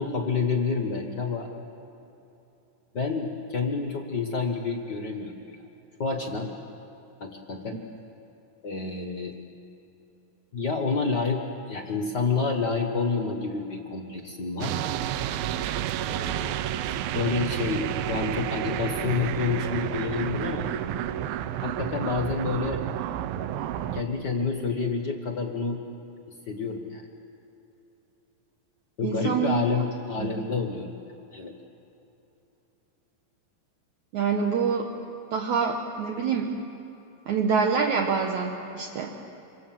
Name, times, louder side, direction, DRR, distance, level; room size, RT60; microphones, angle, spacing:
voice 1, 0.0-1.5 2.9-5.3 6.0-6.5 7.2-7.8 8.6-9.3 10.5-14.7 16.0-16.6 17.1-20.7 21.6-22.8 23.9-25.8 26.5-27.0 29.0-30.9 31.3-31.5, left 4 dB, 55° left, 4 dB, 1.2 m, -28 dB
sound 1, 14.6-24.0, right 11 dB, 90° right, 2.6 m, -30 dB
voice 2, 29.0-29.5 30.2-30.3 34.1-34.9 35.3-36.5 37.3-39.1, right 6 dB, 60° right, 1 dB, 2.5 m, -26 dB
26.0 x 26.0 x 7.7 m, 3.0 s
omnidirectional pair, 4.1 m